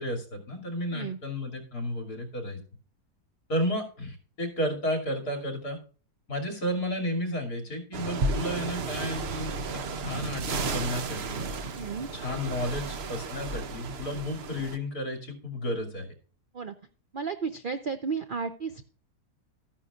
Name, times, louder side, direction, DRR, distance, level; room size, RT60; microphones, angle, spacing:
voice 1, 0.0-2.6 3.5-5.8 6.3-11.4 12.1-16.1, equal, 65° left, 2 dB, 3.3 m, -32 dB
sound 1, 7.9-14.8, right 3 dB, 50° right, 0.9 m, -33 dB
voice 2, 11.7-12.1 16.5-16.7 17.1-18.8, right 5 dB, 65° right, 9 dB, 0.5 m, -33 dB
13.5 x 10.0 x 2.4 m, 0.40 s
omnidirectional pair, 1.7 m